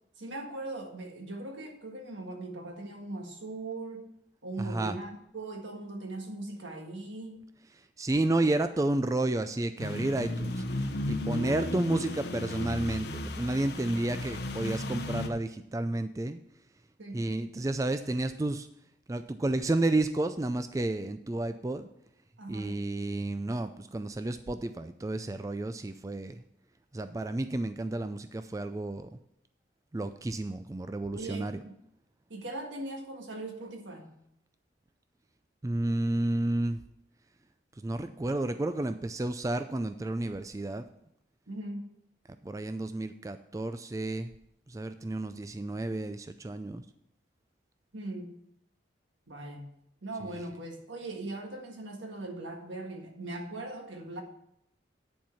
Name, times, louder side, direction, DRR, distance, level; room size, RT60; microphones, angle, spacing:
voice 1, 0.2-4.1 4.4-7.4 11.3-11.6 13.9-14.2 17.0-17.2 22.4-22.8 31.1-31.7 32.3-34.1 41.5-41.9 47.9-48.4 49.3-49.7 50.0-54.2, right 2 dB, 85° right, 2 dB, 1.7 m, -40 dB
voice 2, 4.6-5.0 7.7-10.6 11.1-16.4 17.1-18.7 19.1-21.9 22.5-26.4 26.9-29.2 29.9-31.6 35.6-36.8 37.8-40.8 42.4-44.3 44.7-46.8 50.3-50.4, right 2 dB, 15° right, 9 dB, 0.3 m, -31 dB
sound 1, 9.8-15.3, left 1 dB, 60° left, 0.8 m, -35 dB
10.0 x 4.5 x 7.1 m, 0.77 s
head